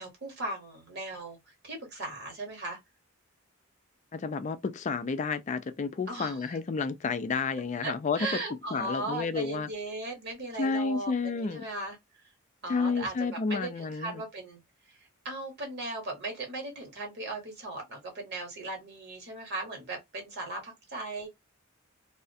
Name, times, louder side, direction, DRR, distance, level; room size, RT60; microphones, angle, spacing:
voice 1, 0.0-2.8 6.1-6.6 7.8-12.0 12.6-14.6 14.9-21.3, right 2 dB, 50° right, 1.0 m, -37 dB
voice 2, 4.1-8.3 8.7-9.7 10.6-11.7 12.7-14.2, left 4 dB, 35° left, 0.3 m, -31 dB
2.4 x 2.0 x 2.6 m
head